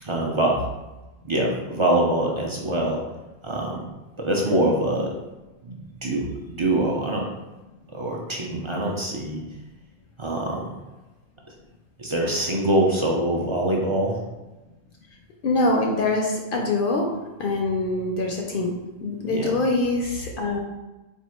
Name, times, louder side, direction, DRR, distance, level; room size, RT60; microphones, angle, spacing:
voice 1, 0.0-0.6 1.2-3.0 3.4-3.8 4.2-5.1 5.6-7.3 7.9-9.4 10.2-10.6 12.0-14.2 19.3-19.5, right 1 dB, 40° right, -1 dB, 0.4 m, -24 dB
voice 2, 15.4-17.1 17.4-18.7 19.0-20.6, left 2 dB, 60° left, 0 dB, 0.7 m, -24 dB
3.5 x 2.4 x 4.3 m, 1.1 s
omnidirectional pair, 1.1 m